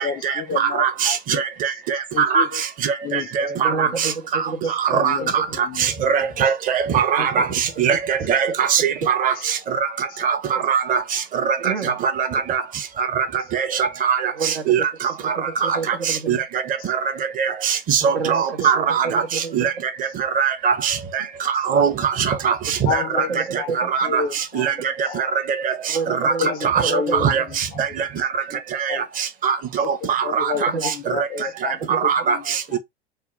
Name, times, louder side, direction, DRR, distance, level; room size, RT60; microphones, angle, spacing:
voice 1, 0.0-1.8 2.1-2.6 3.0-4.0 4.6-6.5 7.2-7.3 8.2-8.3 9.3-9.5 10.1-10.2 11.8-11.9 16.8-16.9 18.3-18.7 20.1-20.2 21.5-21.7 22.8-25.4 26.4-28.6 28.9-29.1 29.7-32.8, left 7 dB, 30° left, 0.5 m, -32 dB
voice 2, 0.6-1.1 1.6-1.7 2.2-2.4 3.4-3.9 4.3-4.4 4.8-5.2 5.8-7.4 7.8-9.3 10.2-10.4 10.7-11.0 12.5-12.6 13.2-13.3 13.5-13.7 14.0-14.2 14.7-14.8 15.7-15.8 16.3-16.4 17.4-19.2 19.5-19.7 20.4-20.9 21.7-22.5 22.9-23.0 23.9-24.2 24.6-24.7 26.2-26.3 26.7-26.8 27.2-27.4 29.4-29.6 30.1-30.7 31.9-32.4 32.7-32.8, right 7 dB, 25° right, 0.7 m, -20 dB
voice 3, 3.6-5.6 7.2-7.3 7.9-8.3 10.5-10.6 11.6-12.0 14.3-14.7 15.2-16.4 18.0-19.8 23.1-23.9 25.9-27.4 30.7-31.1 31.8-32.0, right 4 dB, 75° right, 0.9 m, -30 dB
3.4 x 2.2 x 3.6 m
figure-of-eight pair, 80°, 31 cm